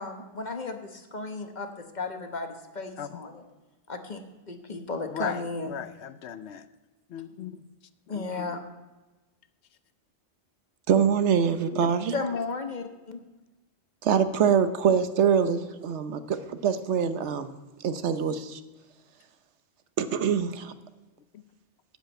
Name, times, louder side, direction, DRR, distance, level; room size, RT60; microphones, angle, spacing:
voice 1, 0.0-3.4 3.9-4.2 4.5-5.7 8.1-8.6 12.1-13.2, left 3 dB, 45° left, 5 dB, 1.2 m, -34 dB
voice 2, 5.7-6.7 7.1-7.6 8.1-8.5 11.6-11.9 21.3-21.4, left 9 dB, 75° left, 13 dB, 0.9 m, -37 dB
voice 3, 10.9-12.1 14.0-17.5 17.8-18.6 20.0-20.7, right 7 dB, 90° right, 11 dB, 1.1 m, -24 dB
13.0 x 5.1 x 8.9 m, 1.1 s
omnidirectional pair, 1.1 m